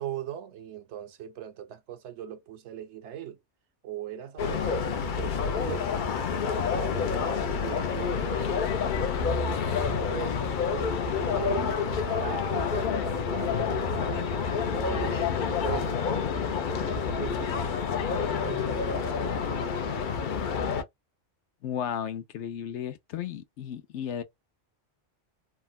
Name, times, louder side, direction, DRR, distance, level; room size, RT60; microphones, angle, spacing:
voice 1, 0.0-3.4 3.8-5.9 6.3-10.4 10.7-16.3 16.7-17.6 18.1-20.1, right 10 dB, 75° right, 0.9 m, -40 dB
sound 1, 4.4-20.8, left 6 dB, 55° left, 0.6 m, -28 dB
voice 2, 21.6-24.2, left 9 dB, 75° left, 0.9 m, -34 dB
3.5 x 2.1 x 2.3 m
omnidirectional pair, 1.2 m